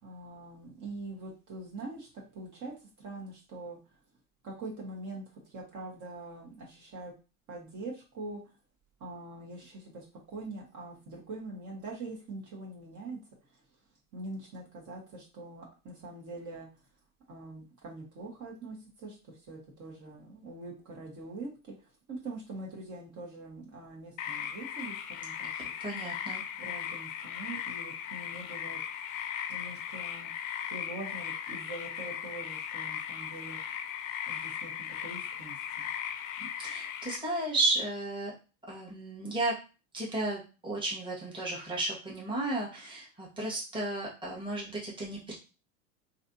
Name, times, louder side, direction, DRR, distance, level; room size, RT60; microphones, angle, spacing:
voice 1, 0.0-4.0 4.4-7.1 7.5-8.5 9.0-13.6 14.1-16.7 17.3-25.7 26.6-28.8 29.1-29.2 29.5-30.3 30.7-33.7 34.3-35.9, right 2 dB, 40° right, -2 dB, 1.5 m, -44 dB
sound 1, 24.2-37.2, left 9 dB, 65° left, 0.6 m, -38 dB
voice 2, 25.5-26.4 36.4-38.3 38.7-39.5 39.9-45.3, right 2 dB, 10° right, -4 dB, 1.5 m, -33 dB
3.2 x 2.8 x 2.7 m, 0.32 s
hypercardioid pair, 90°, 42 cm